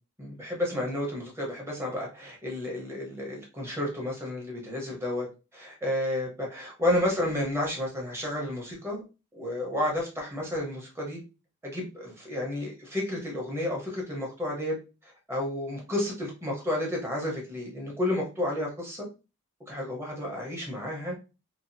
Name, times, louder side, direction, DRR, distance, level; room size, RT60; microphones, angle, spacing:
voice 1, 0.2-5.3 5.5-9.0 9.3-11.2 11.6-14.7 15.3-19.1 19.7-21.1, left 1 dB, 10° right, -1 dB, 0.8 m, -31 dB
2.7 x 2.4 x 2.6 m, 0.30 s
head